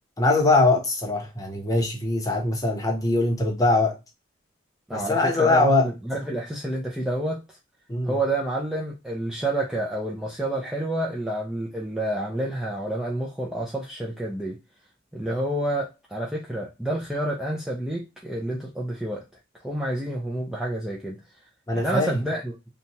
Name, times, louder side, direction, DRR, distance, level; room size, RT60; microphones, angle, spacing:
voice 1, 0.2-4.0 4.9-5.9 7.9-8.1 21.7-22.2, left 2 dB, 20° left, 0.8 m, -22 dB
voice 2, 4.9-7.6 8.0-14.6 15.1-19.3 19.6-21.2 21.7-22.5, right 1 dB, 5° right, 0.4 m, -29 dB
2.8 x 2.2 x 2.7 m
head